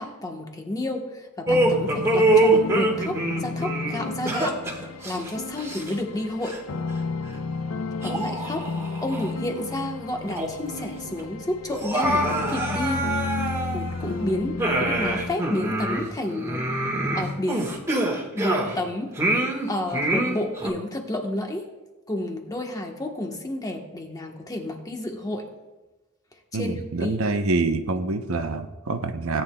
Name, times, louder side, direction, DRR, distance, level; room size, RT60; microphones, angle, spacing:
voice 1, 0.0-4.6 5.0-6.6 8.0-8.7 9.0-13.1 13.7-16.7 17.1-17.7 18.3-19.4 19.6-21.7 22.1-25.5 26.5-26.7 27.0-27.2, left 1 dB, 15° left, 2 dB, 1.2 m, -30 dB
sound 1, 1.5-15.4, left 3 dB, 70° left, 0.6 m, -33 dB
sound 2, 1.5-6.2 6.4-6.6 7.3-7.4 8.0-9.3 9.7-9.8 10.2-10.8 11.0-11.1 11.7-14.1 14.6-18.8 19.2-20.7, right 2 dB, 15° right, 1.5 m, -25 dB
voice 2, 26.5-29.4, right 3 dB, 70° right, 7 dB, 0.8 m, -26 dB
17.5 x 9.3 x 2.3 m, 1.1 s
head